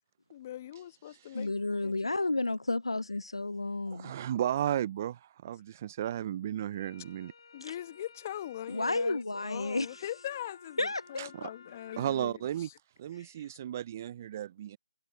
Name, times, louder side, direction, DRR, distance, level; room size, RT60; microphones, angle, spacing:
voice 1, 0.3-2.3 7.5-12.8, left 12 dB, 35° left, 1.7 m, -42 dB
voice 2, 1.3-4.3 8.7-10.0 10.8-11.0 13.2-13.3, left 2 dB, 90° left, 0.6 m, -32 dB
voice 3, 3.9-7.3 11.2-11.5 12.0-12.7 13.0-14.8, right 11 dB, 35° right, 0.6 m, -34 dB
sound 1, 6.6-12.2, left 5 dB, 60° left, 7.4 m, -56 dB
figure-of-eight pair, 150°, 3 cm